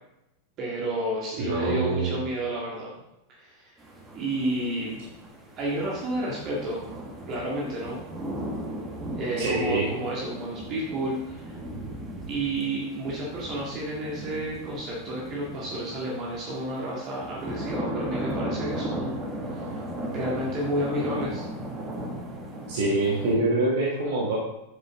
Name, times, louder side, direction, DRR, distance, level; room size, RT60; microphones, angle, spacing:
voice 1, 0.6-2.9 3.3-3.8 4.1-5.1 5.6-6.8 7.3-8.0 9.2-11.6 12.3-19.2 19.5-21.4, right 1 dB, 35° right, -4 dB, 1.9 m, -31 dB
voice 2, 1.4-2.2 9.4-9.9 22.7-24.4, right 2 dB, 50° right, -4 dB, 1.7 m, -25 dB
sound 1, 3.8-23.4, right 1 dB, 15° right, 1.9 m, -37 dB
8.9 x 7.3 x 3.6 m, 0.87 s
figure-of-eight pair, 90°, 0 cm